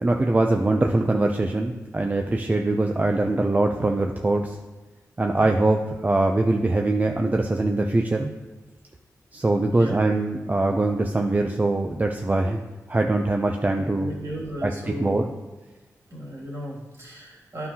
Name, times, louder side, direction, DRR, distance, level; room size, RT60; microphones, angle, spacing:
voice 1, 0.0-4.6 5.2-8.3 9.3-12.6 12.9-14.1 14.6-14.7 15.0-15.2, right 2 dB, 25° right, 3 dB, 0.5 m, -22 dB
voice 2, 13.8-15.3 16.1-17.7, equal, 50° right, -4 dB, 2.5 m, -35 dB
9.8 x 5.6 x 2.8 m, 1.2 s
cardioid pair, 75°, 6 cm